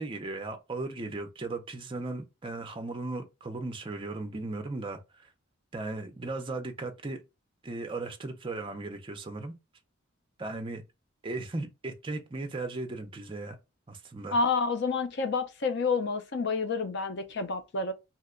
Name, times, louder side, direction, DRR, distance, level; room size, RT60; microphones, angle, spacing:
voice 1, 0.0-5.3 5.7-7.2 7.6-9.5 10.4-10.8 11.2-13.6 13.9-14.4, right 2 dB, 25° right, 0.4 m, -36 dB
voice 2, 14.3-17.9, left 4 dB, 55° left, 0.5 m, -29 dB
2.8 x 2.1 x 3.6 m
head